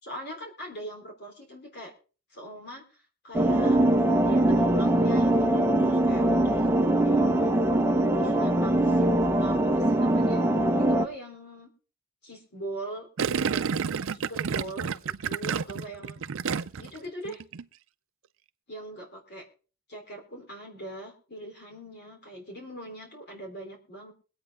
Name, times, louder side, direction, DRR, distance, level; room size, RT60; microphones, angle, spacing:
voice 1, 0.0-1.9 2.3-3.8 4.2-6.7 7.0-7.6 8.2-9.1 9.4-10.4 10.8-11.7 12.2-13.7 14.1-16.2 16.8-17.4 18.7-19.4 19.9-24.1, right 1 dB, 50° left, 1 dB, 3.8 m, -41 dB
sound 1, 3.3-11.1, right 1 dB, 10° right, 0.9 m, -22 dB
Gurgling, 13.2-17.0 17.2-17.6, right 6 dB, 65° right, 0.5 m, -30 dB
23.0 x 8.6 x 3.6 m, 0.36 s
head